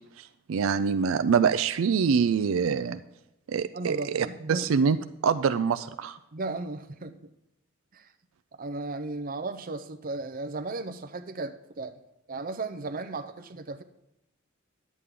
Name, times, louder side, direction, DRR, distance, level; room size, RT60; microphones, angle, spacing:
voice 1, 0.5-3.0 3.5-5.0 5.2-6.2, right 6 dB, 85° right, 11 dB, 0.4 m, -25 dB
voice 2, 3.7-5.0 6.3-7.2 7.9-8.1 8.5-12.0 12.3-13.8, right 3 dB, 45° right, 8 dB, 0.6 m, -35 dB
11.0 x 8.4 x 3.7 m, 0.90 s
head